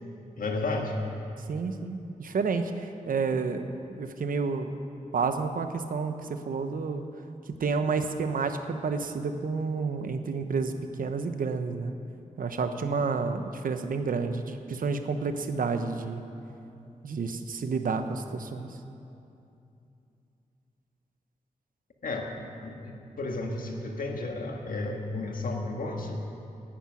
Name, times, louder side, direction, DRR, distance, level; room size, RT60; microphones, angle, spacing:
voice 1, 0.4-0.9 22.0-22.3 22.6-26.2, left 2 dB, 80° left, 1 dB, 1.8 m, -33 dB
voice 2, 1.5-4.7 5.1-7.0 7.6-11.9 12.4-16.2 17.0-18.7, right 4 dB, 85° right, 8 dB, 0.9 m, -30 dB
11.0 x 10.0 x 9.7 m, 2.7 s
wide cardioid pair, 165°, 14 cm